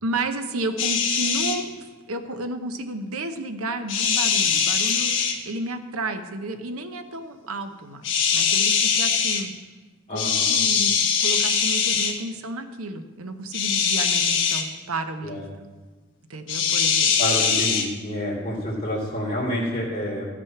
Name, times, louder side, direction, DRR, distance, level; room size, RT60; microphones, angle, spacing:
voice 1, 0.0-9.5 10.1-15.7 16.3-17.2, right 2 dB, 85° right, 7 dB, 0.9 m, -32 dB
sound 1, 0.8-1.6 3.9-5.4 8.0-9.4 10.2-12.1 13.5-14.6 16.5-17.9, left 6 dB, 60° left, 1.2 m, -22 dB
voice 2, 10.1-10.5 15.2-15.4 17.2-20.3, equal, 25° left, -6 dB, 2.9 m, -28 dB
13.5 x 6.1 x 5.9 m, 1.3 s
head